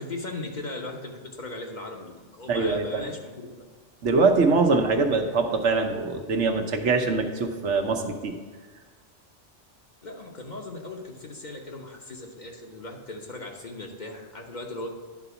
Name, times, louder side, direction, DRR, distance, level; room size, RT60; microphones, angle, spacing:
voice 1, 0.0-3.7 10.0-14.9, left 2 dB, 40° left, 1 dB, 1.1 m, -38 dB
voice 2, 2.5-3.0 4.0-8.3, right 3 dB, 75° right, 4 dB, 1.2 m, -23 dB
11.0 x 4.0 x 7.0 m, 1.4 s
omnidirectional pair, 1.2 m